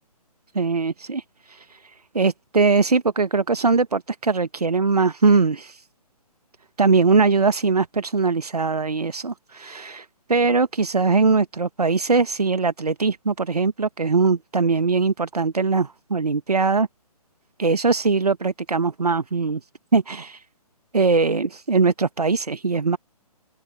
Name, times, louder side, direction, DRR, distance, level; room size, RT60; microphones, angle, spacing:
voice 1, 0.5-5.9 6.8-16.9 17.6-19.6 19.9-20.4 20.9-23.0, right 4 dB, 75° right, 1.2 m, -21 dB
open air
figure-of-eight pair, 135°, 20 cm